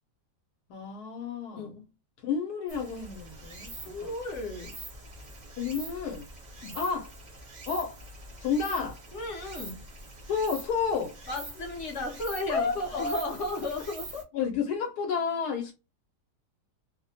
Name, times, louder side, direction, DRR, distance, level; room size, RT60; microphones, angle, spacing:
voice 1, 0.7-1.7 2.2-3.7 4.0-4.1 5.6-6.3 6.7-7.1 7.7-8.0 8.4-9.0 10.3-11.2 12.5-13.4 14.3-15.7, left 5 dB, 75° left, 1.1 m, -30 dB
voice 2, 1.5-1.9 3.8-4.8 6.6-6.8 8.7-8.8 9.1-9.8 11.3-14.3, left 2 dB, 60° left, 0.9 m, -35 dB
Stream, 2.7-14.2, right 2 dB, 50° right, 0.5 m, -45 dB
2.7 x 2.1 x 2.7 m
omnidirectional pair, 1.8 m